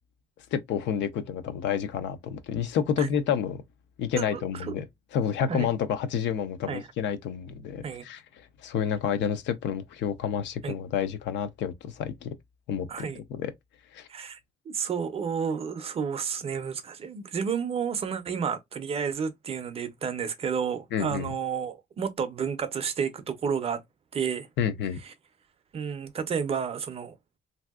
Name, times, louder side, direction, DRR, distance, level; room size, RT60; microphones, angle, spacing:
voice 1, 0.5-3.6 4.0-4.8 5.1-8.2 8.6-12.3 12.7-13.5 13.9-14.1 20.9-21.3 24.6-25.0, left 8 dB, 80° left, 0.5 m, -29 dB
voice 2, 4.2-4.7 5.5-5.7 6.7-6.9 7.8-8.0 10.6-10.8 12.9-13.2 14.1-14.4 14.7-23.8 24.1-24.5 25.0-25.1 25.7-27.1, right 6 dB, 35° right, 0.4 m, -31 dB
3.3 x 2.6 x 2.3 m
cardioid pair, 170°, 18 cm